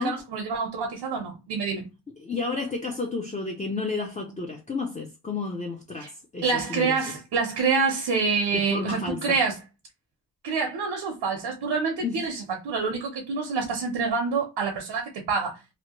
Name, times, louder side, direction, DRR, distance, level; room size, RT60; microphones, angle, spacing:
voice 1, 0.0-1.9 6.0-6.1 6.4-9.6 10.4-15.6, right 5 dB, 90° right, 0.8 m, -27 dB
voice 2, 2.2-7.0 8.5-9.4 12.0-12.2, left 4 dB, 20° left, 0.4 m, -31 dB
2.8 x 2.1 x 2.9 m
wide cardioid pair, 135°, 41 cm